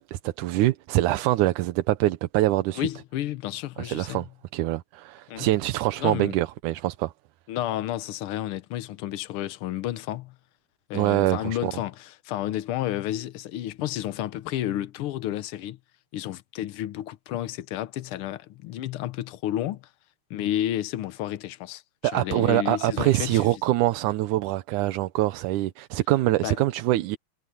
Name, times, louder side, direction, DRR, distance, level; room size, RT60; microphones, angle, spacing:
voice 1, 0.0-2.9 3.8-4.3 4.5-7.1 10.9-11.7 22.0-27.2, right 16 dB, 85° right, 2.2 m, -24 dB
voice 2, 2.7-4.3 5.3-5.5 6.0-6.4 7.5-10.3 10.9-15.8 16.1-19.9 20.3-23.6 26.4-26.6, left 13 dB, 80° left, 1.2 m, -31 dB
omnidirectional pair, 3.5 m